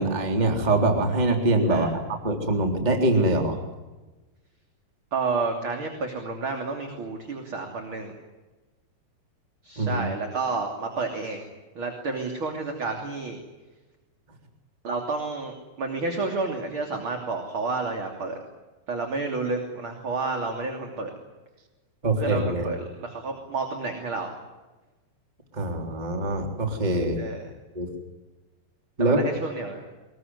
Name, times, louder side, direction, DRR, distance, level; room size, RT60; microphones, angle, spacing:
voice 1, 0.0-3.6 9.8-10.1 22.0-22.7 25.5-27.2 27.7-27.9 29.0-29.4, right 2 dB, 10° right, 3 dB, 3.1 m, -24 dB
voice 2, 5.1-8.1 9.6-11.4 11.7-13.4 14.8-18.4 18.9-21.1 22.2-24.3 27.2-27.5 29.0-29.8, right 3 dB, 35° right, 3 dB, 3.3 m, -30 dB
23.5 x 21.5 x 9.7 m, 1.2 s
omnidirectional pair, 4.9 m